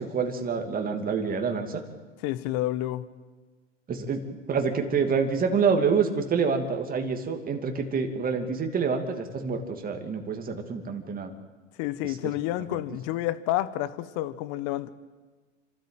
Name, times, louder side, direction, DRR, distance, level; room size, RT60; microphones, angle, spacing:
voice 1, 0.0-1.8 3.9-4.2 4.5-11.3 12.0-12.2, right 5 dB, 20° right, 5 dB, 2.7 m, -27 dB
voice 2, 2.2-3.0 11.8-14.9, left 14 dB, 45° left, 15 dB, 1.4 m, -29 dB
28.0 x 13.0 x 9.2 m, 1.4 s
hypercardioid pair, 110°, 38 cm